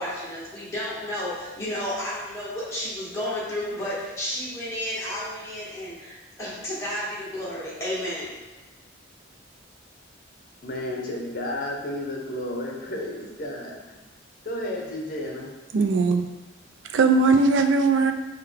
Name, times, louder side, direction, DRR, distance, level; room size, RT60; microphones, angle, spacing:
voice 1, 0.0-8.3, left 1 dB, 15° left, -8 dB, 1.2 m, -32 dB
voice 2, 10.6-13.8 14.4-15.5, left 1 dB, 50° left, -1 dB, 0.8 m, -32 dB
voice 3, 15.7-16.2 16.8-18.1, right 4 dB, 75° right, 6 dB, 0.4 m, -19 dB
5.5 x 2.2 x 3.4 m, 1.2 s
head